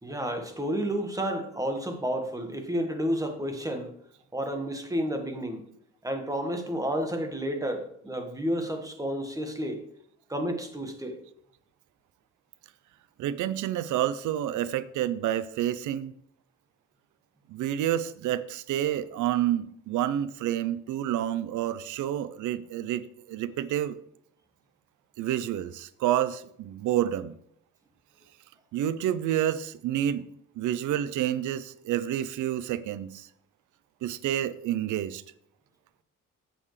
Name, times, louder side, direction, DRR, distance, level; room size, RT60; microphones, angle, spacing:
voice 1, 0.0-3.9 4.3-5.6 6.0-9.8 10.3-11.2, equal, 10° right, 1.4 m, -31 dB
voice 2, 13.2-16.1 17.5-24.0 25.2-27.4 28.7-30.2 30.6-33.3 34.0-35.2, right 11 dB, 80° right, 0.5 m, -29 dB
8.7 x 7.2 x 3.2 m
cardioid pair, 90°, 30 cm